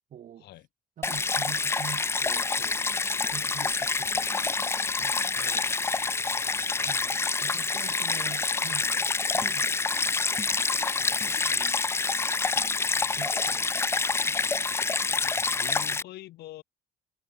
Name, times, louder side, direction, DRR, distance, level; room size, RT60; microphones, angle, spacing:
voice 1, 0.1-0.6 1.0-2.9 3.3-5.7 6.8-10.5 11.0-11.8 12.5-14.4, right 10 dB, 50° right, 1.6 m, -46 dB
Stream, 1.0-16.0, left 4 dB, 15° left, 0.4 m, -27 dB
sound 1, 2.4-2.5 3.4-3.5 4.0-4.1 5.2-5.7 6.1-6.2 6.8-7.3 7.7-7.9 8.8-8.9, left 6 dB, 40° left, 5.7 m, -55 dB
voice 2, 6.2-7.2 15.6-16.6, left 16 dB, 75° left, 4.1 m, -45 dB
cardioid pair, 110°, 17 cm